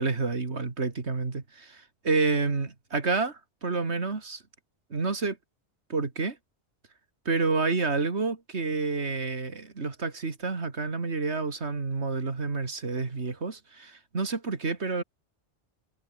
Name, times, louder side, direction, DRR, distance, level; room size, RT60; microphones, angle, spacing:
voice 1, 0.0-4.4 4.9-5.4 5.9-6.4 7.3-15.0, right 4 dB, 70° right, 2.6 m, -29 dB
omnidirectional pair, 1.2 m